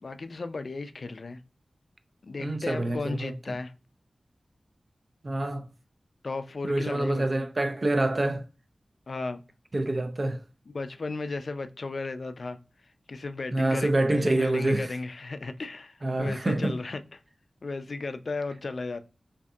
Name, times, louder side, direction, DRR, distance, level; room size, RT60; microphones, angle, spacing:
voice 1, 0.0-1.4 2.2-3.7 6.2-7.5 9.1-9.4 10.7-12.6 13.1-17.2 17.6-19.0, left 3 dB, 70° left, 0.3 m, -35 dB
voice 2, 2.4-3.3 5.2-5.7 6.6-8.4 9.7-10.4 13.5-15.0 16.0-16.8, right 1 dB, 50° right, 0.4 m, -26 dB
2.6 x 2.6 x 2.3 m
cardioid pair, 50°, 0 cm